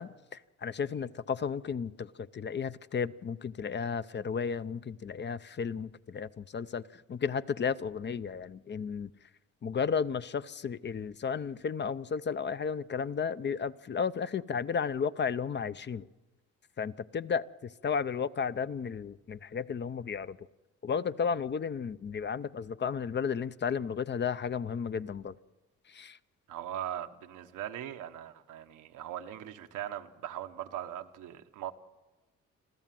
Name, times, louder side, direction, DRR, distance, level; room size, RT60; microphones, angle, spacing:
voice 1, 0.0-9.1 9.6-16.1 16.8-20.5 20.8-25.3 25.9-26.2, left 6 dB, 35° left, 0.6 m, -33 dB
voice 2, 26.5-31.7, right 11 dB, 90° right, 1.2 m, -40 dB
26.5 x 14.5 x 7.6 m
cardioid pair, 90°, 30 cm